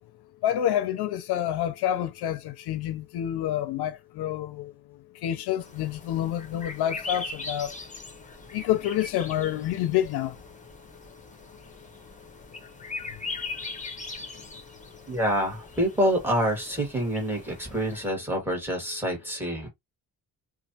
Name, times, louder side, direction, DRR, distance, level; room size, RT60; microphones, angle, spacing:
voice 1, 0.4-4.7 5.2-7.7 8.5-10.4, left 11 dB, 80° left, 0.5 m, -28 dB
sound 1, 5.6-18.1, left 3 dB, 20° left, 0.9 m, -41 dB
voice 2, 15.1-19.7, equal, 5° right, 1.8 m, -27 dB
2.9 x 2.5 x 2.7 m
cardioid pair, 115°, 38 cm